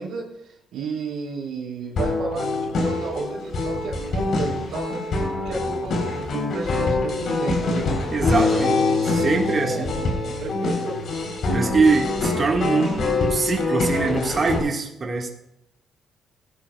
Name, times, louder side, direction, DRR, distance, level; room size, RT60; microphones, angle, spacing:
voice 1, 0.0-7.9 8.4-11.0, right 4 dB, 80° right, -3 dB, 3.9 m, -33 dB
sound 1, 2.0-14.6, left 3 dB, 60° left, 3.9 m, -24 dB
voice 2, 8.1-8.8 9.1-9.9 11.5-15.3, right 4 dB, 35° right, 2 dB, 1.8 m, -23 dB
18.0 x 11.0 x 2.4 m, 0.81 s
cardioid pair, 90°, 0 cm